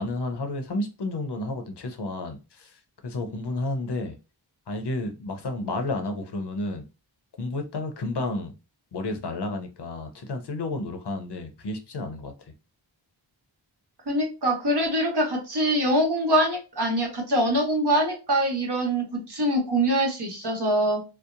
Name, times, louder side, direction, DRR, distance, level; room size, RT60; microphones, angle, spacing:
voice 1, 0.0-4.2 4.7-6.8 7.4-8.5 8.9-12.3, left 2 dB, 55° left, 0.6 m, -31 dB
voice 2, 14.1-21.0, right 1 dB, 55° right, 1.1 m, -24 dB
2.7 x 2.0 x 2.4 m
wide cardioid pair, 55°, 48 cm